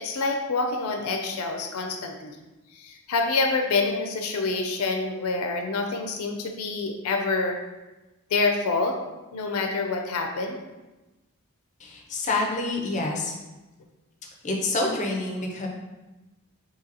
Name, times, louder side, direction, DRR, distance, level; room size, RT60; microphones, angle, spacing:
voice 1, 0.0-2.4 2.7-7.6 8.3-9.0 9.3-10.6, left 3 dB, 85° left, 3 dB, 0.4 m, -27 dB
voice 2, 11.8-13.3 14.4-15.7, left 2 dB, 35° left, 0 dB, 0.5 m, -27 dB
2.8 x 2.7 x 3.9 m, 1.1 s
head